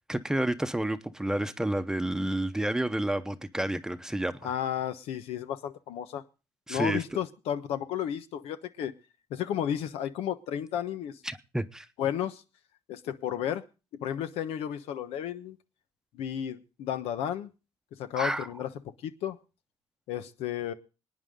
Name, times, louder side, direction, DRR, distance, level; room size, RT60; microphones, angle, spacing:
voice 1, 0.1-4.5 6.7-7.0 11.2-11.9 18.2-18.5, right 1 dB, 5° right, 0.9 m, -30 dB
voice 2, 4.4-6.2 6.7-8.9 9.3-11.2 12.0-12.4 12.9-13.6 14.0-15.6 16.1-17.5 18.0-18.7 19.0-19.4 20.1-20.7, left 10 dB, 85° left, 1.1 m, -32 dB
25.5 x 9.6 x 3.7 m
cardioid pair, 120°, 10 cm